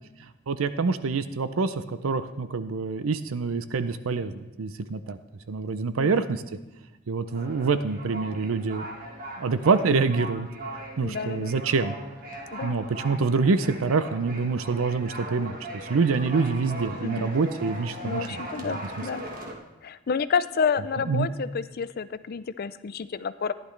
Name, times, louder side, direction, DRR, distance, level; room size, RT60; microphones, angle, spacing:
voice 1, 0.5-5.2 5.5-6.4 7.1-8.8 9.4-10.5 11.0-12.0 12.6-15.5 15.9-18.8 21.1-21.3, right 4 dB, 90° right, 12 dB, 0.5 m, -26 dB
voice 2, 6.0-6.3 11.0-11.5 12.5-12.8 17.0-17.3 18.0-19.2 19.8-23.5, left 6 dB, 50° left, 14 dB, 0.4 m, -29 dB
sound 1, 7.3-19.5, right 1 dB, 45° right, 1.4 m, -39 dB
15.0 x 10.5 x 3.3 m, 1.0 s
head